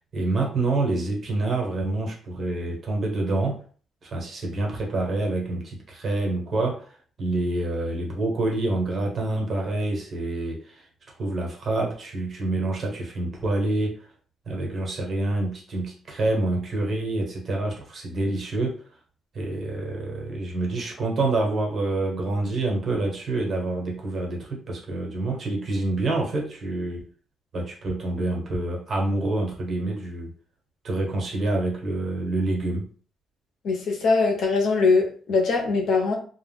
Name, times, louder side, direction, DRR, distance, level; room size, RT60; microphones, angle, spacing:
voice 1, 0.0-3.6 4.0-10.9 11.2-14.1 14.5-18.8 19.3-27.1 27.5-30.3 30.8-32.9, right 2 dB, 45° right, 1.2 m, -27 dB
voice 2, 33.6-36.1, left 4 dB, 70° left, 0.8 m, -22 dB
2.3 x 2.3 x 3.4 m
cardioid pair, 90°, 0 cm